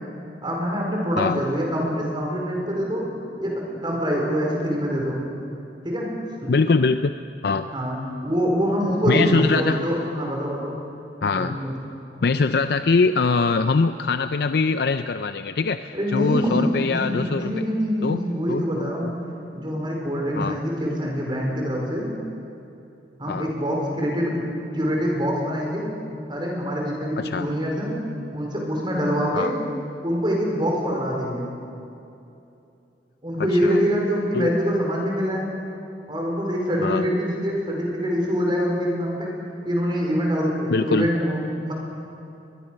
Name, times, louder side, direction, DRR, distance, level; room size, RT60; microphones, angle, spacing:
voice 1, 0.4-3.0 3.4-5.2 5.8-6.1 6.4-6.5 7.7-8.0 8.2-10.8 11.3-11.7 12.2-12.3 15.9-19.1 19.5-22.1 23.2-24.5 24.7-25.9 26.3-27.9 28.3-29.5 30.0-31.5 33.2-35.5 36.1-39.4 39.6-41.4 41.6-41.7, equal, 25° right, -1 dB, 5.0 m, -25 dB
voice 2, 6.5-7.2 7.4-7.7 9.1-9.8 11.2-11.6 12.2-17.6 18.0-18.2 18.5-19.2 20.4-20.6 23.3-23.5 27.2-27.5 29.3-29.5 33.4-33.8 34.3-34.5 36.8-37.1 40.7-41.1, left 4 dB, 65° left, 10 dB, 0.5 m, -22 dB
22.0 x 21.5 x 6.5 m, 2.8 s
head